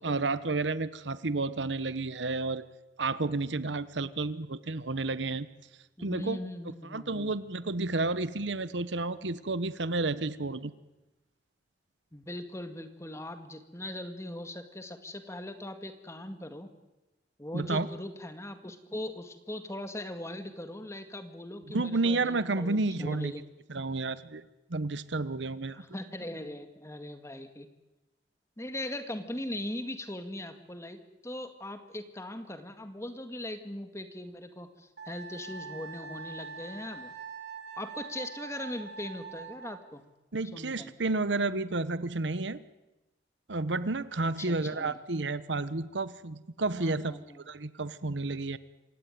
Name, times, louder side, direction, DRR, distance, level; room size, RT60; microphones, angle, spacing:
voice 1, 0.0-2.7 3.0-5.5 6.0-6.4 6.9-10.7 17.5-17.9 21.7-23.3 23.7-24.4 24.7-25.8 40.3-42.6 43.5-47.2 47.5-48.6, right 3 dB, 85° right, 15 dB, 1.1 m, -31 dB
voice 2, 6.0-7.4 12.1-16.7 17.4-23.4 25.7-27.7 28.6-37.1 37.8-40.0 40.5-40.9 44.4-45.0 46.8-47.4, left 1 dB, 15° left, 7 dB, 2.0 m, -40 dB
Wind instrument woodwind instrument, 35.0-39.8, right 5 dB, 70° right, 3.0 m, -43 dB
27.0 x 16.5 x 9.4 m, 1.0 s
head